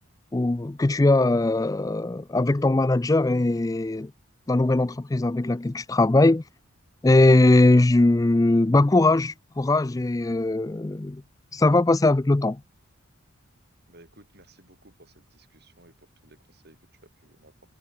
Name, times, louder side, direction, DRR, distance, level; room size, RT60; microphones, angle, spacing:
voice 1, 0.3-4.1 4.5-6.4 7.0-11.2 11.5-12.6, left 2 dB, 15° left, 0.4 m, -20 dB
voice 2, 13.9-17.5, right 1 dB, 50° right, 7.1 m, -56 dB
head